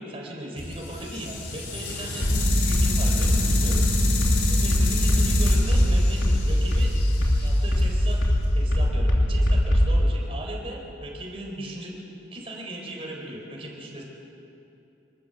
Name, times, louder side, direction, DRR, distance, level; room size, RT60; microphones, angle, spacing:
voice 1, 0.0-2.3 2.5-3.9 4.5-6.9 7.4-8.2 8.5-12.0 12.3-14.0, right 1 dB, 30° right, -1 dB, 4.4 m, -37 dB
sound 1, 0.6-8.7, left 2 dB, 65° left, 3.8 m, -30 dB
sound 2, 2.2-10.1, left 1 dB, 90° left, 3.2 m, -21 dB
26.0 x 13.5 x 8.2 m, 2.8 s
head